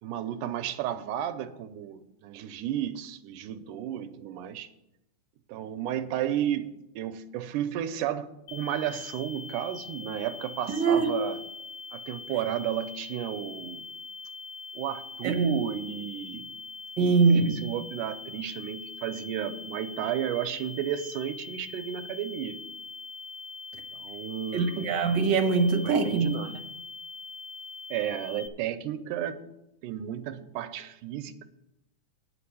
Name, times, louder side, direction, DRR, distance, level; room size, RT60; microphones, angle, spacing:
voice 1, 0.0-4.7 5.5-6.7 7.0-11.4 11.9-13.8 14.7-16.5 17.5-22.6 23.9-24.9 25.8-26.6 27.9-29.5 29.8-31.5, right 10 dB, 80° right, 2.1 m, -33 dB
sound 1, 8.5-28.5, left 4 dB, 80° left, 2.4 m, -42 dB
voice 2, 10.7-11.1 15.2-15.6 17.0-17.7 24.5-26.3, right 4 dB, 55° right, 1.2 m, -23 dB
9.8 x 6.0 x 8.3 m
omnidirectional pair, 3.7 m